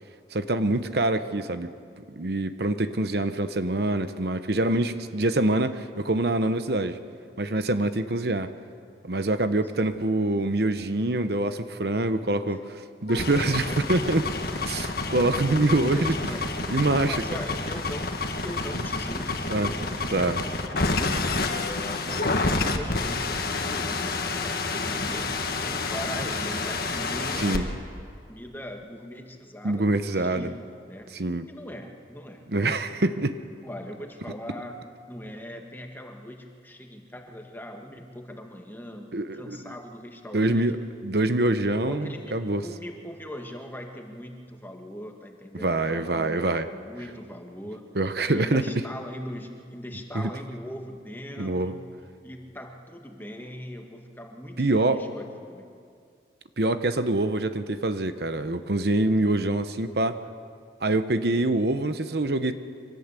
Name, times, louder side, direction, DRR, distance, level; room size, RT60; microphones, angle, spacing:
voice 1, 0.3-1.7 2.1-7.0 7.4-8.5 9.0-14.2 14.7-16.1 16.7-17.2 19.5-19.7 20.1-20.4 27.4-27.6 29.6-30.5 31.1-31.5 32.5-33.4 39.1-39.7 40.3-40.8 41.0-42.6 45.6-46.7 47.9-48.6 50.1-50.3 51.4-51.7 54.6-55.0 56.6-60.2 60.8-62.5, right 2 dB, 60° right, 10 dB, 0.9 m, -25 dB
sound 1, 13.1-27.6, left 3 dB, 55° left, 1.7 m, -29 dB
voice 2, 13.5-14.2 14.5-15.0 15.9-16.5 17.1-21.1 21.5-27.8 28.3-30.6 30.9-31.1 31.5-33.1 33.6-34.8 35.1-40.7 41.8-47.9 48.3-51.9 52.2-55.8, equal, 10° left, 3 dB, 1.7 m, -40 dB
24.5 x 17.5 x 8.3 m, 2.3 s
head